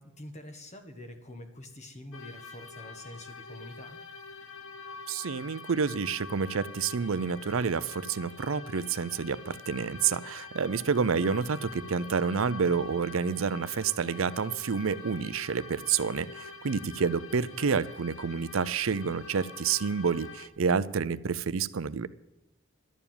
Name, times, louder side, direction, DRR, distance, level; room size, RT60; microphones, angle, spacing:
voice 1, 0.0-4.0, left 1 dB, 35° left, 6 dB, 1.6 m, -46 dB
sound 1, 2.1-20.5, left 4 dB, 75° left, 1.1 m, -45 dB
voice 2, 5.1-22.1, right 6 dB, 70° right, 16 dB, 0.5 m, -29 dB
12.5 x 7.1 x 8.8 m, 1.0 s
head